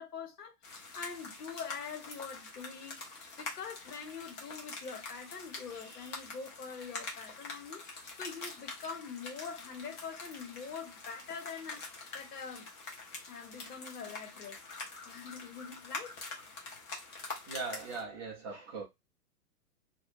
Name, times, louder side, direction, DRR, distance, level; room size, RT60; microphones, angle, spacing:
voice 1, 0.0-7.8 8.2-12.7 13.3-14.6 15.0-16.2, left 6 dB, 80° left, 1.0 m, -44 dB
sound 1, 0.6-18.0, left 3 dB, 20° left, 0.8 m, -45 dB
voice 2, 17.5-18.8, right 4 dB, 20° right, 0.4 m, -39 dB
2.6 x 2.1 x 2.4 m
hypercardioid pair, 120°, 46 cm